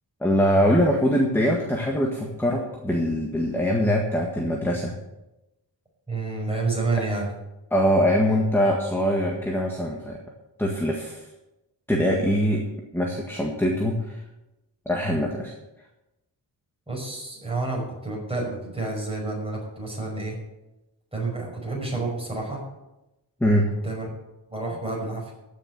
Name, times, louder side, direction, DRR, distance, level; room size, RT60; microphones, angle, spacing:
voice 1, 0.2-4.9 7.7-10.2 10.6-11.2 11.9-12.7 12.9-14.2 14.8-15.5 23.4-23.7, equal, 5° left, 0 dB, 1.7 m, -23 dB
voice 2, 6.1-7.3 16.9-20.4 21.1-22.6 23.8-24.1 24.5-25.3, right 3 dB, 15° right, -3 dB, 5.5 m, -29 dB
14.5 x 6.6 x 7.8 m, 0.96 s
wide cardioid pair, 140°, 43 cm